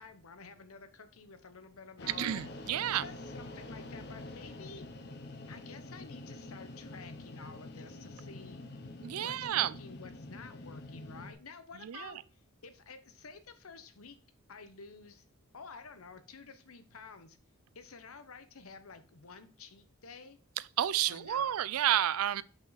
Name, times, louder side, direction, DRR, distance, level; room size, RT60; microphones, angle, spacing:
voice 1, 0.0-4.8 5.5-8.6 9.1-14.2 14.5-15.2 15.5-17.4 17.7-20.4 21.1-21.5, left 4 dB, 85° left, 0.9 m, -51 dB
sound 1, 2.0-11.3, left 2 dB, 50° left, 0.9 m, -46 dB
voice 2, 2.1-3.0 9.0-9.7 11.8-12.1 20.8-22.4, right 11 dB, 90° right, 0.4 m, -30 dB
5.3 x 5.2 x 4.0 m
head